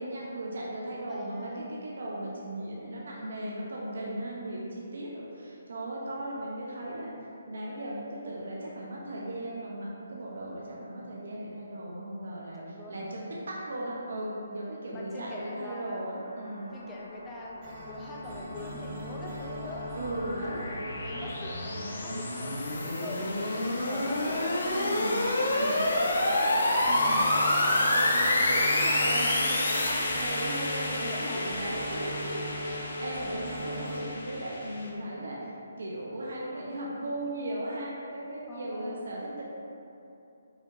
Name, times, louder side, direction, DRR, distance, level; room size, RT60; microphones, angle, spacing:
voice 1, 0.0-7.1 7.5-16.7 20.0-20.6 24.7-25.8 26.8-39.4, right 1 dB, 70° right, -5 dB, 0.6 m, -37 dB
voice 2, 0.9-1.7 12.5-13.1 14.7-16.1 16.7-19.9 20.5-24.5 25.4-26.5 29.1-29.6 31.0-31.6 32.3-32.4 38.5-39.0, left 2 dB, 10° left, -3 dB, 0.4 m, -43 dB
sound 1, 16.2-34.0, equal, 20° right, 1.3 m, -41 dB
sound 2, 18.8-34.9, left 1 dB, 65° left, 0.7 m, -29 dB
5.0 x 2.8 x 2.6 m, 2.8 s
hypercardioid pair, 170°, 0 cm